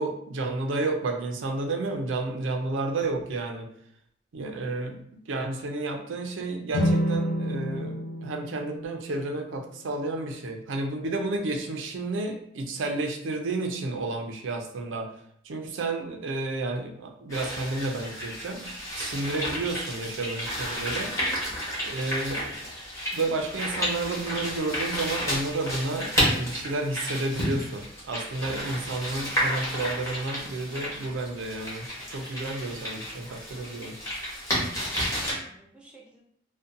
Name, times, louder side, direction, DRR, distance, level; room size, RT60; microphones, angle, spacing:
voice 1, 0.0-3.7 4.3-5.0 5.3-15.1 15.5-21.1 21.8-22.6 23.1-34.0, right 2 dB, 85° right, 3 dB, 0.4 m, -31 dB
sound 1, 6.7-10.0, equal, 60° left, 0.6 m, -29 dB
sound 2, 17.3-35.3, equal, 15° left, 0.9 m, -31 dB
voice 2, 21.3-21.8 34.6-36.2, right 1 dB, 5° right, -3 dB, 0.4 m, -52 dB
2.6 x 2.1 x 2.5 m, 0.68 s
head